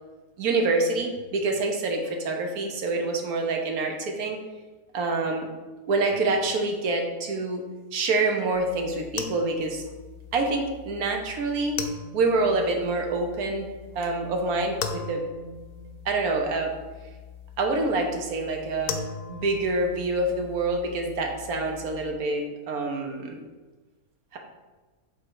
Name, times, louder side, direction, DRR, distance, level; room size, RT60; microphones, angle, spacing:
voice 1, 0.4-4.4 4.9-5.5 5.9-7.6 7.9-9.8 10.3-11.8 12.1-13.7 13.9-15.2 16.0-16.7 17.6-18.9 19.3-23.4 24.3-24.4, right 3 dB, 75° right, 3 dB, 1.4 m, -26 dB
sound 1, 8.5-22.1, left 6 dB, 90° left, 1.2 m, -40 dB
7.7 x 3.7 x 4.7 m, 1.3 s
omnidirectional pair, 1.6 m